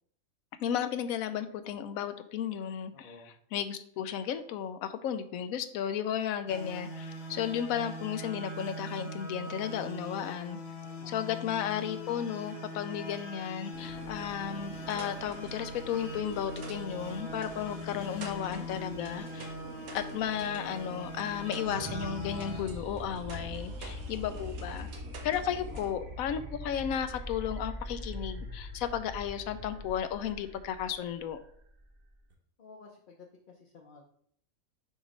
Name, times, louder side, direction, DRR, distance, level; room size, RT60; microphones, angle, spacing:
voice 1, 0.6-3.1 3.5-10.6 11.1-19.5 19.9-24.9 25.2-31.4, left 9 dB, 80° left, 11 dB, 1.0 m, -34 dB
voice 2, 2.9-3.3 10.8-11.3 25.7-26.2 32.6-34.0, left 4 dB, 50° left, -1 dB, 0.7 m, -53 dB
sound 1, 6.5-22.6, left 1 dB, 65° left, 1.6 m, -42 dB
sound 2, 13.7-25.9, right 3 dB, 85° right, 1.4 m, -48 dB
sound 3, 21.6-32.3, equal, 45° right, 1.0 m, -42 dB
6.1 x 3.1 x 5.3 m, 0.65 s
omnidirectional pair, 1.4 m